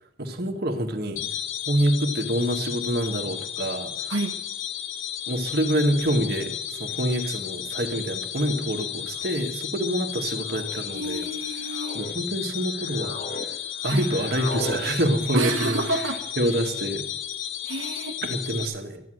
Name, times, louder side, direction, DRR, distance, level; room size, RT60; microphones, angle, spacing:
voice 1, 0.2-1.2 1.7-4.1 5.3-11.3 11.9-13.6 13.8-16.0 16.4-17.1 18.2-19.0, right 1 dB, 50° right, 3 dB, 1.8 m, -26 dB
sound 1, 1.2-18.7, left 10 dB, 90° left, 1.9 m, -33 dB
sound 2, 6.8-6.9 7.9-8.2 9.1-9.5 10.3-10.8 11.4-12.1 12.6-13.5 13.7-14.8, left 1 dB, 40° left, 1.6 m, -37 dB
voice 2, 10.9-12.0 13.8-14.1 15.3-16.2 17.6-18.2, right 2 dB, 75° right, 2 dB, 1.2 m, -29 dB
13.5 x 11.0 x 7.8 m, 0.86 s
head